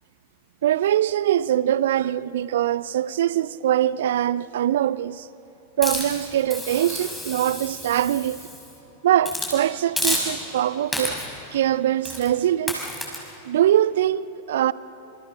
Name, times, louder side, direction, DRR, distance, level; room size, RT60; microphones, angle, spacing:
voice 1, 0.6-5.3 5.8-8.4 9.0-11.2 11.5-12.8 13.4-14.7, right 11 dB, 60° right, 0.6 m, -22 dB
Hiss, 5.8-8.7 9.2-9.6 10.0-10.6 10.9-11.4 12.0-12.3 12.7-13.2, left 1 dB, 5° left, 6.1 m, -30 dB
28.5 x 27.5 x 6.5 m
figure-of-eight pair, 90°, 0 cm